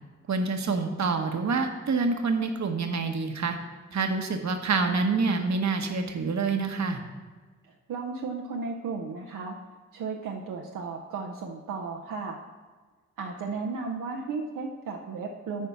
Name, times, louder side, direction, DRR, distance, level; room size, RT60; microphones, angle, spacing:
voice 1, 0.3-3.5 3.9-7.0, right 4 dB, 60° right, 5 dB, 1.1 m, -27 dB
voice 2, 7.9-9.6 9.9-12.4 13.2-15.7, right 4 dB, 80° right, 1 dB, 0.7 m, -34 dB
9.4 x 4.4 x 5.8 m, 1.4 s
supercardioid pair, 45°, 31 cm